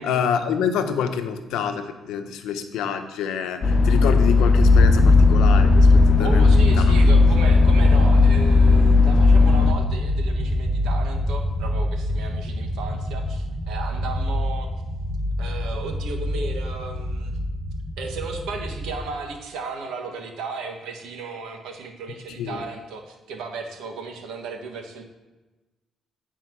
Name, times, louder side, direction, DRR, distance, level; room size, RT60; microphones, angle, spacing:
voice 1, 0.0-6.8 22.4-22.6, left 7 dB, 90° left, 8 dB, 0.8 m, -27 dB
sound 1, 3.6-9.7, left 4 dB, 50° left, 0.8 m, -17 dB
sound 2, 4.5-19.0, left 1 dB, 45° right, 3.1 m, -23 dB
voice 2, 6.2-14.7 15.4-17.4 18.0-25.0, right 4 dB, 90° right, 2 dB, 1.4 m, -35 dB
9.5 x 4.4 x 6.0 m, 1.2 s
cardioid pair, 90°, 0 cm